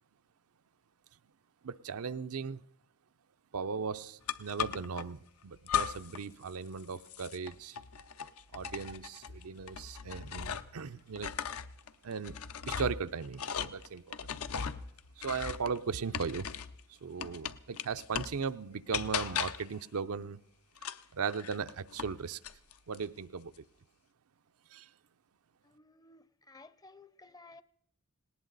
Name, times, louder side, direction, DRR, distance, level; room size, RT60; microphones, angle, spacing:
voice 1, 1.6-2.6 3.5-7.8 8.5-11.3 12.0-14.2 15.2-16.5 16.9-20.4 21.1-22.4 22.9-23.5 24.7-24.9, right 5 dB, 90° right, 0.6 m, -37 dB
sound 1, 4.3-5.0 5.7-6.2 6.5-10.8 11.1-16.8 17.2-18.4 18.9-19.7 20.8-22.2 22.4-23.0, left 7 dB, 85° left, 0.7 m, -38 dB
voice 2, 25.6-27.6, left 3 dB, 20° left, 0.5 m, -56 dB
19.0 x 18.5 x 4.0 m
head